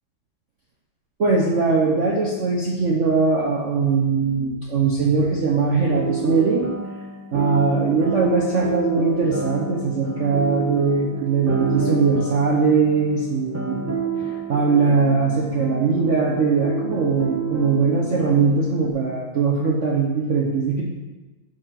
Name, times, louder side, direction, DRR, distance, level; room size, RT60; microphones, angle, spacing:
voice 1, 1.2-6.8 7.3-14.0 14.2-20.8, right 4 dB, 50° right, -2 dB, 1.1 m, -20 dB
sound 1, 5.8-18.9, right 4 dB, 20° right, 0.4 m, -30 dB
11.5 x 4.7 x 5.9 m, 1.2 s
omnidirectional pair, 2.0 m